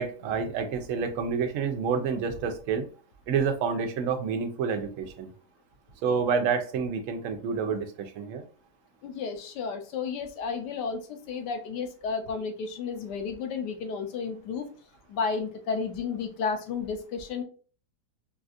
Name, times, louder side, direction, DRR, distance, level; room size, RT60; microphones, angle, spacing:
voice 1, 0.0-2.9 3.3-5.3 6.0-8.4, right 6 dB, 65° right, 6 dB, 0.8 m, -28 dB
voice 2, 9.0-11.0 11.3-14.7 15.1-17.4, left 5 dB, 85° left, 6 dB, 1.3 m, -32 dB
4.0 x 2.4 x 2.5 m, 0.39 s
omnidirectional pair, 1.8 m